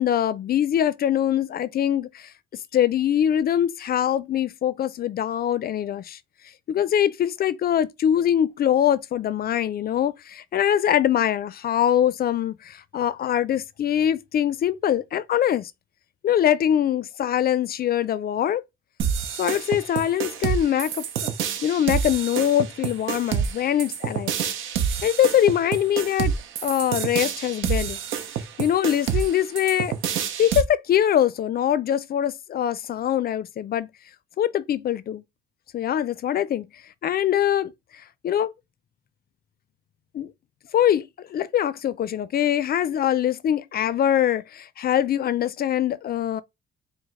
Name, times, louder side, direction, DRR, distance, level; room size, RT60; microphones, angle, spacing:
voice 1, 0.0-2.3 2.7-6.2 6.7-15.7 16.2-18.6 19.4-21.3 21.6-24.3 25.0-26.3 26.6-28.0 28.6-33.9 34.4-35.2 35.7-36.7 37.0-37.7 38.2-38.5 40.1-40.3 40.7-46.4, left 10 dB, 50° left, 0.4 m, -23 dB
sound 1, 19.0-30.6, right 8 dB, 80° right, 0.7 m, -28 dB
5.0 x 2.0 x 3.6 m
cardioid pair, 90°, 20 cm